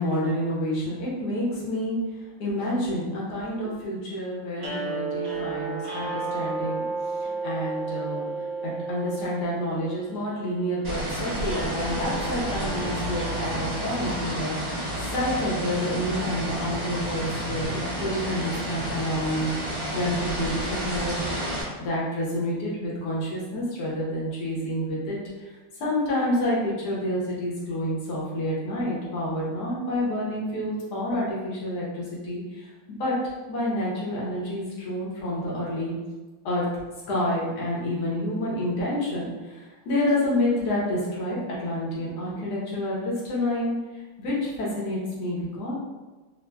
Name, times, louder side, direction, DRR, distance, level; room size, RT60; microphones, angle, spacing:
voice 1, 0.0-21.3 21.8-32.7 33.0-33.1 33.5-35.9 36.4-36.7 37.1-45.7, left 1 dB, 55° left, -5 dB, 1.3 m, -29 dB
sound 1, 4.6-14.8, right 3 dB, 90° right, 0.6 m, -34 dB
sound 2, 10.8-21.6, right 1 dB, 35° right, 0.6 m, -30 dB
4.0 x 2.6 x 2.2 m, 1.2 s
omnidirectional pair, 2.3 m